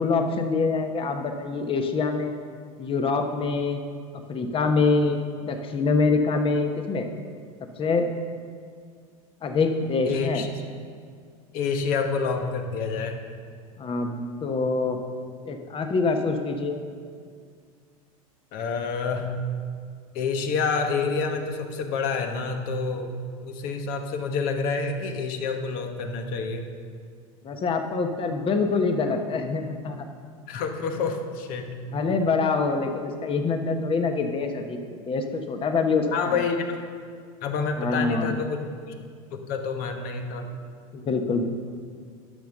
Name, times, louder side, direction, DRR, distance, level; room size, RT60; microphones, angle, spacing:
voice 1, 0.0-2.4 2.8-3.8 4.1-5.2 5.5-7.1 7.8-8.1 9.4-10.5 13.8-15.0 15.4-16.8 27.4-30.1 31.9-36.4 37.8-38.3 40.9-41.4, left 4 dB, 30° left, 6 dB, 1.1 m, -25 dB
voice 2, 10.0-10.5 11.5-13.2 18.5-19.5 20.1-23.1 23.4-26.7 30.5-31.8 36.1-36.8 37.4-38.6 38.9-39.0 39.3-40.5, left 5 dB, 55° left, 4 dB, 1.3 m, -28 dB
11.5 x 5.8 x 6.5 m, 2.1 s
hypercardioid pair, 95°, 18 cm